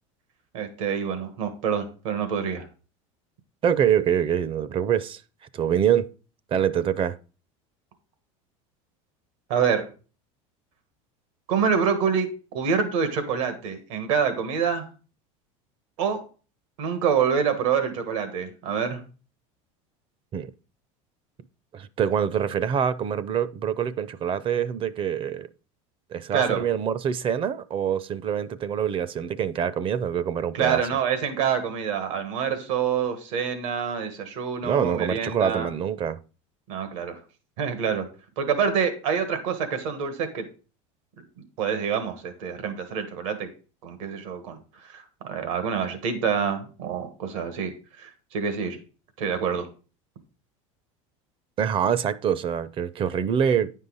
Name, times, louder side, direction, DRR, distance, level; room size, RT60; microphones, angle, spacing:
voice 1, 0.5-2.7 9.5-9.9 11.5-14.9 16.0-16.2 16.8-19.0 26.3-26.6 30.5-35.7 36.7-37.2 37.6-38.1 38.4-40.4 41.4-43.5 43.8-44.6 44.9-47.7 48.0-48.8 49.2-49.7, right 6 dB, 80° right, 1.5 m, -26 dB
voice 2, 3.6-5.2 5.5-6.1 6.5-7.2 20.3-20.5 21.7-25.5 26.1-30.8 34.6-36.2 51.6-53.7, right 8 dB, 35° right, 0.5 m, -25 dB
9.5 x 5.5 x 4.0 m
supercardioid pair, 115°, 16 cm